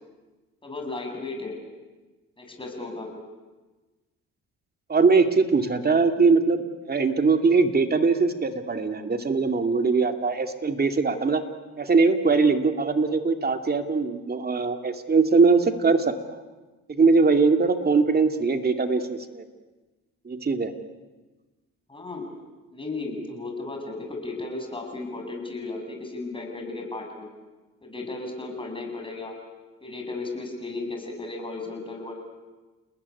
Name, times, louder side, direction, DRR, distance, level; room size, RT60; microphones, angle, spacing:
voice 1, 0.6-1.5 2.4-3.2 21.9-22.3 22.7-27.3 27.8-29.3 29.8-32.1, left 3 dB, 15° left, 2 dB, 7.8 m, -35 dB
voice 2, 4.9-6.6 6.9-11.4 11.8-16.1 16.9-19.4 20.3-20.7, right 4 dB, 30° right, 6 dB, 2.5 m, -21 dB
30.0 x 19.5 x 9.7 m, 1.2 s
cardioid pair, 90°, 30 cm